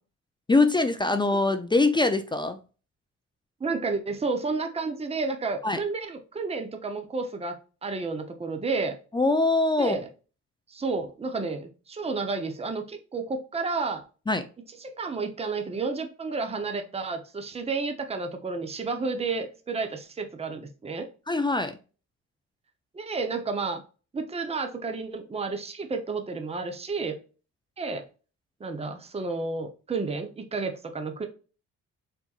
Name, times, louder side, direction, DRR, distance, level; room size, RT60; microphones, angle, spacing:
voice 1, 0.5-2.6 5.6-5.8 9.1-10.0 14.3-14.4 21.3-21.7, left 2 dB, 15° left, 0.5 m, -23 dB
voice 2, 3.6-7.6 7.8-9.0 9.8-10.1 10.7-14.0 14.8-21.1 22.9-23.8 24.1-27.2 27.8-28.0 28.6-31.3, right 4 dB, 20° right, 0.8 m, -31 dB
4.4 x 4.2 x 2.4 m
cardioid pair, 90°, 30 cm